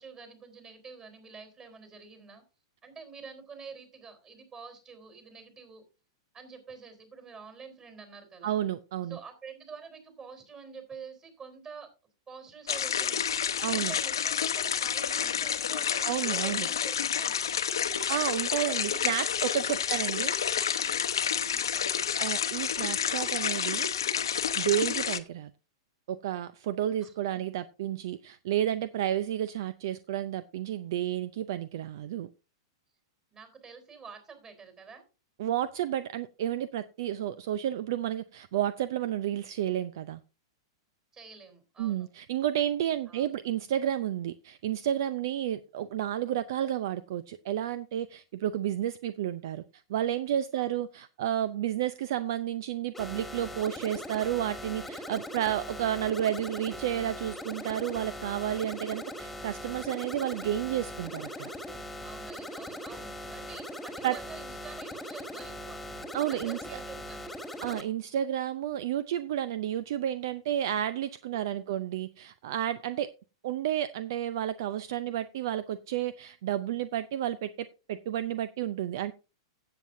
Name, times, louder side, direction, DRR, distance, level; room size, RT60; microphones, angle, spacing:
voice 1, 0.0-2.4 2.8-5.8 6.3-8.6 9.0-11.9 12.3-17.4 18.5-19.1 19.7-21.0 21.4-22.0 27.0-27.4 33.3-35.0 41.1-42.1 43.1-43.3 50.5-50.8 62.0-65.8 66.3-67.4 71.3-71.7, right 5 dB, 25° right, 6 dB, 3.7 m, -48 dB
voice 2, 8.4-9.2 13.6-13.9 16.0-16.7 17.9-20.3 22.2-24.1 24.6-25.5 26.1-32.3 35.4-40.2 41.8-49.6 49.9-61.5 64.0-64.2 66.1-66.6 67.6-73.1 73.4-79.1, right 11 dB, 60° right, 16 dB, 0.5 m, -31 dB
sound 1, 12.7-25.2, left 8 dB, 75° left, 0.9 m, -29 dB
sound 2, 52.9-67.8, left 1 dB, ahead, 1.9 m, -40 dB
16.0 x 7.8 x 2.6 m, 0.31 s
figure-of-eight pair, 105°, 2 cm